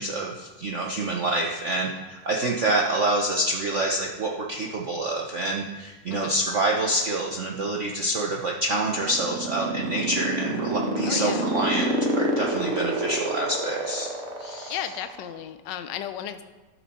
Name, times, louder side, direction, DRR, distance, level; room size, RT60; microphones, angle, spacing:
voice 1, 0.0-14.1 14.4-14.8, right 2 dB, 75° right, -1 dB, 0.6 m, -27 dB
sound 1, 8.7-15.3, right 2 dB, 40° right, 1.1 m, -26 dB
voice 2, 11.1-11.5 14.7-16.4, left 10 dB, 70° left, 10 dB, 1.1 m, -34 dB
13.0 x 6.0 x 4.2 m, 1.2 s
omnidirectional pair, 2.4 m